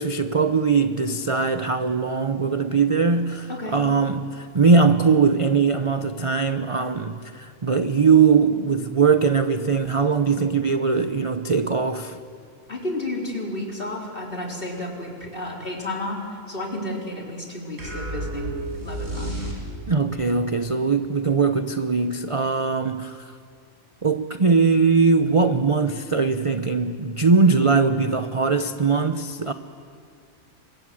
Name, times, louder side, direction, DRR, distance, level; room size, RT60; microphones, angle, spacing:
voice 1, 0.0-12.2 19.9-23.3 24.0-29.5, right 5 dB, 30° right, 0.7 m, -21 dB
voice 2, 12.7-18.5 18.8-19.4, left 1 dB, 40° left, 4.3 m, -31 dB
sound 1, 17.8-20.1, right 1 dB, 85° right, 6.1 m, -31 dB
29.5 x 24.5 x 7.7 m
omnidirectional pair, 1.4 m